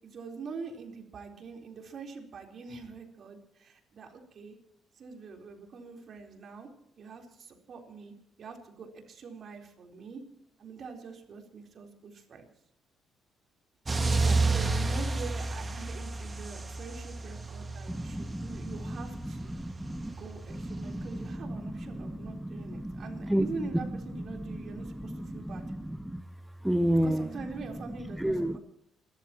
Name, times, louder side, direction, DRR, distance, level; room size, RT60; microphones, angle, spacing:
voice 1, 0.0-4.6 4.9-6.7 7.0-10.2 10.6-12.5 14.1-19.6 20.1-25.6 27.0-28.6, right 4 dB, 55° right, 2 dB, 4.0 m, -44 dB
sound 1, 13.9-21.3, right 3 dB, 25° right, 1.9 m, -32 dB
voice 2, 17.9-19.0 19.5-20.1 20.6-21.2 21.6-23.5 24.3-24.7 25.0-25.8 26.0-26.2 26.6-27.3 28.2-28.6, right 1 dB, 5° right, 10 dB, 0.8 m, -32 dB
28.0 x 13.5 x 3.0 m, 0.75 s
cardioid pair, 80°, 0 cm